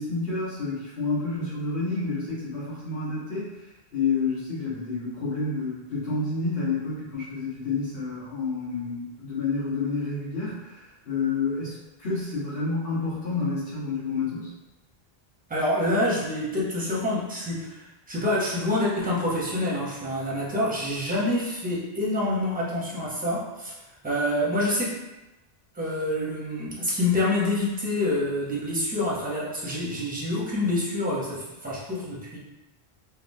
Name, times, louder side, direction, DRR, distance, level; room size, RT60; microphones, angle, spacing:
voice 1, 0.0-3.6 3.9-14.5, left 4 dB, 65° left, -10 dB, 1.6 m, -29 dB
voice 2, 15.5-23.7 24.0-24.9 25.7-32.4, left 1 dB, 10° right, -5 dB, 0.6 m, -27 dB
3.5 x 2.2 x 2.6 m, 1.0 s
omnidirectional pair, 1.1 m